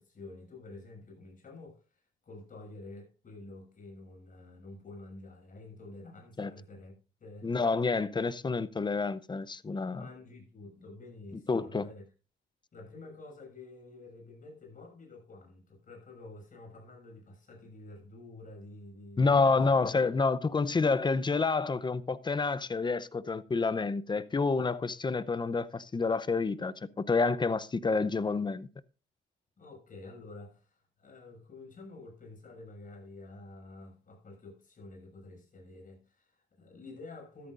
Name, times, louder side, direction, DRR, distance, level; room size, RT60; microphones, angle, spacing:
voice 1, 0.0-6.9 7.2-7.5 9.9-12.0 12.7-19.7 29.6-37.5, left 2 dB, 45° left, 6.7 m, -49 dB
voice 2, 7.4-10.0 11.5-11.8 19.2-28.7, left 4 dB, 20° left, 0.7 m, -28 dB
13.5 x 13.0 x 2.6 m
cardioid pair, 90°, 20 cm